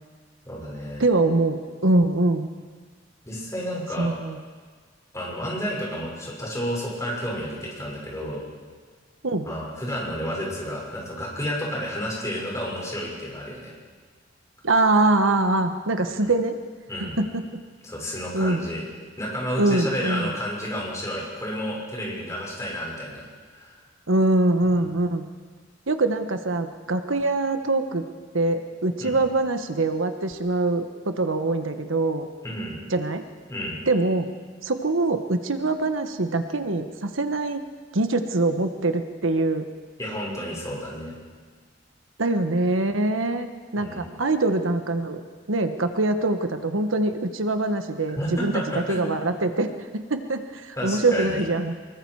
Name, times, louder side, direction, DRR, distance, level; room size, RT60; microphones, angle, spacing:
voice 1, 0.5-1.1 3.2-4.1 5.1-8.5 9.4-13.7 16.1-16.3 16.9-17.2 17.8-18.8 19.2-23.3 23.6-23.7 24.7-24.8 29.0-29.2 32.4-32.8 33.5-33.8 40.0-41.2 43.8-44.1 48.2-49.3 50.8-51.4, equal, 15° left, -4 dB, 6.1 m, -31 dB
voice 2, 1.0-2.5 4.0-4.4 9.2-9.5 14.6-16.6 17.0-17.4 18.3-18.6 19.6-20.3 24.1-25.3 25.9-28.0 28.3-32.3 32.9-33.2 33.9-34.3 34.6-37.6 37.9-39.6 42.2-45.2 45.5-51.7, right 2 dB, 85° right, 8 dB, 1.3 m, -23 dB
25.0 x 22.0 x 4.8 m, 1.5 s
head